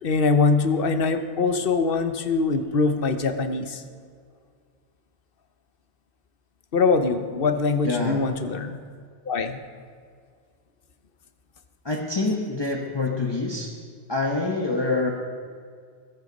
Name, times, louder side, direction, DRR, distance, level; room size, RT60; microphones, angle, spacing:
voice 1, 0.0-3.8 6.7-8.8 9.3-9.6, left 4 dB, 55° left, 9 dB, 1.1 m, -23 dB
voice 2, 7.8-8.2 11.8-13.7 14.1-15.1, left 3 dB, 25° left, 0 dB, 1.1 m, -26 dB
20.5 x 8.2 x 5.2 m, 2.1 s
omnidirectional pair, 1.1 m